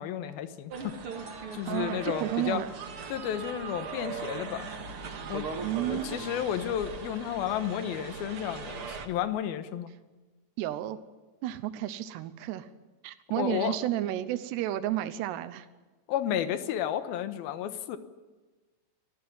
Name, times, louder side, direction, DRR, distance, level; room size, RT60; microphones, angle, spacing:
voice 1, 0.0-2.6 3.1-4.7 5.3-5.5 5.9-9.9 13.3-13.8 16.1-18.0, left 10 dB, 70° left, 10 dB, 2.7 m, -32 dB
sound 1, 0.7-9.1, right 5 dB, 50° right, 1.8 m, -39 dB
voice 2, 1.7-2.7 5.6-6.1 10.6-11.0 11.4-12.7 13.0-15.7, right 13 dB, 80° right, 10 dB, 3.0 m, -32 dB
24.5 x 15.0 x 9.5 m, 1.2 s
omnidirectional pair, 5.0 m